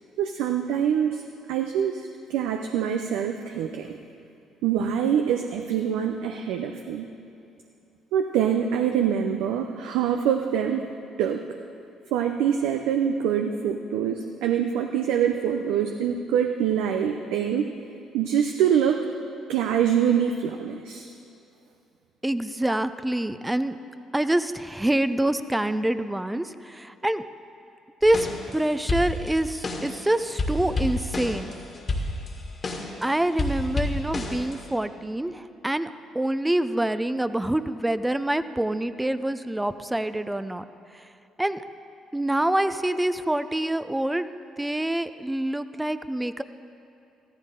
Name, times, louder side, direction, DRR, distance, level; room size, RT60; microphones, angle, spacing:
voice 1, 0.2-1.2 1.5-4.0 4.6-7.1 8.1-10.9 11.2-11.4 12.1-17.7 18.1-19.0 19.5-21.1, right 8 dB, 80° right, 4 dB, 0.6 m, -25 dB
voice 2, 22.2-23.8 24.1-27.2 28.0-31.5 33.0-40.6 41.4-41.6 42.1-44.3 44.6-46.4, right 1 dB, 10° right, 12 dB, 0.6 m, -26 dB
sound 1, 28.0-28.6 28.9-30.0 30.4-33.0 33.4-34.8, left 2 dB, 40° left, 2.1 m, -29 dB
14.5 x 14.0 x 3.8 m, 2.7 s
hypercardioid pair, 55°, 0 cm